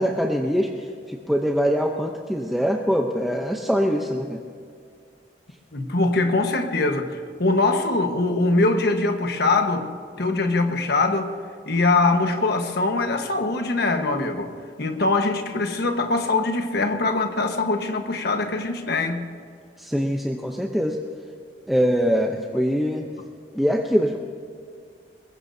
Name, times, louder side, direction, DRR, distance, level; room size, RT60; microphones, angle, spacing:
voice 1, 0.0-4.4 19.8-21.0 21.7-23.1 23.5-24.2, equal, ahead, 0.7 m, -23 dB
voice 2, 5.7-9.8 10.1-11.3 11.7-14.5 14.8-19.3, left 3 dB, 60° left, 1.4 m, -22 dB
22.0 x 21.5 x 2.8 m
head